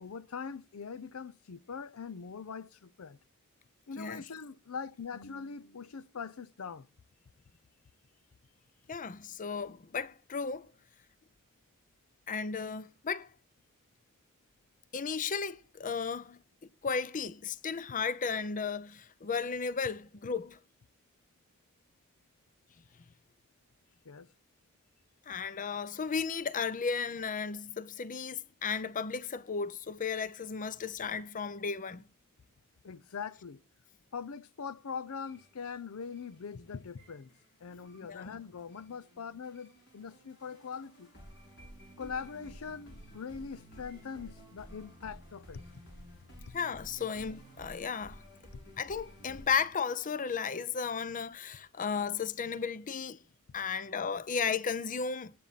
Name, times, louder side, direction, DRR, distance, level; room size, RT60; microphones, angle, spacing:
voice 1, 0.0-3.2 3.9-6.9 24.0-24.3 27.2-27.3 32.8-33.6 34.1-37.3 37.6-41.1 42.0-45.6 46.5-46.6, left 6 dB, 90° left, 0.6 m, -42 dB
voice 2, 8.9-10.7 12.3-13.3 14.9-16.4 16.8-20.6 25.3-32.1 38.0-38.4 46.5-48.2 48.8-53.2 53.5-55.3, left 5 dB, 40° left, 0.6 m, -34 dB
sound 1, 35.2-49.7, equal, 55° left, 6.5 m, -53 dB
18.0 x 8.5 x 4.0 m
head